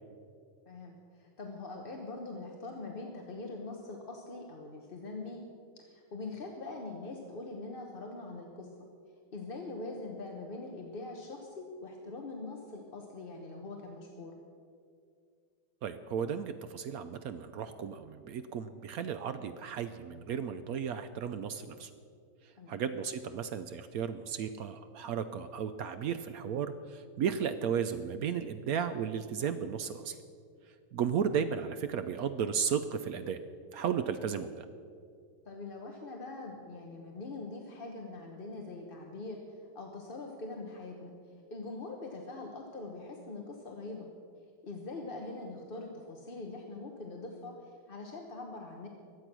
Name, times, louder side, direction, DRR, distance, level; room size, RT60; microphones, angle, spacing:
voice 1, 0.7-5.4 5.8-8.7 9.3-14.3 22.6-22.8 35.4-41.1 41.5-44.1 44.6-48.9, left 3 dB, 35° left, 2 dB, 1.0 m, -43 dB
voice 2, 15.8-21.9 22.7-30.2 30.9-33.4 33.7-34.6, right 7 dB, 90° right, 9 dB, 0.7 m, -34 dB
22.0 x 8.4 x 6.1 m, 2.3 s
omnidirectional pair, 2.2 m